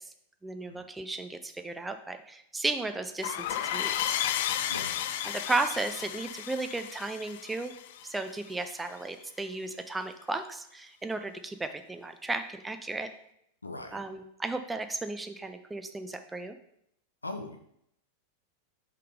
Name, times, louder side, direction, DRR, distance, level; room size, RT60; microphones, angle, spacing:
voice 1, 0.4-4.2 5.2-7.7 8.0-13.1 13.9-16.6, right 3 dB, 10° right, 8 dB, 0.5 m, -34 dB
sound 1, 3.2-8.5, left 11 dB, 55° left, 0.4 m, -33 dB
voice 2, 13.6-14.0 17.2-17.6, left 2 dB, 80° left, 6 dB, 0.7 m, -39 dB
5.6 x 3.7 x 4.9 m, 0.74 s
figure-of-eight pair, 90°, 0 cm